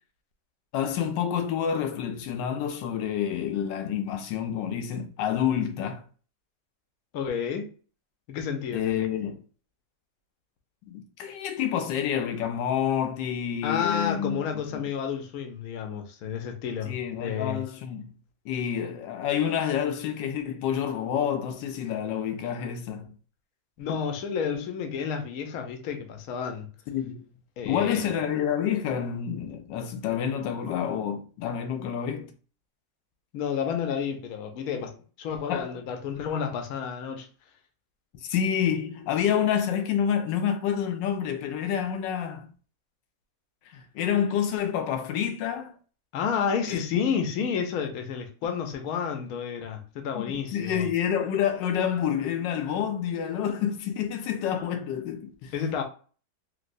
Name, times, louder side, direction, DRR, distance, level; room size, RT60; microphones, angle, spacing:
voice 1, 0.7-6.0 8.7-9.4 10.9-14.4 14.7-14.8 16.9-18.1 18.5-23.1 26.9-27.2 27.6-32.3 35.5-35.8 38.1-42.5 43.7-45.7 46.7-47.1 50.3-55.5, left 8 dB, 85° left, 1.2 m, -28 dB
voice 2, 7.1-7.7 8.3-9.0 13.6-17.6 23.8-26.7 27.6-28.1 33.3-37.3 46.1-50.9 55.5-55.8, left 7 dB, 65° left, 1.0 m, -31 dB
3.1 x 2.9 x 2.5 m
omnidirectional pair, 1.9 m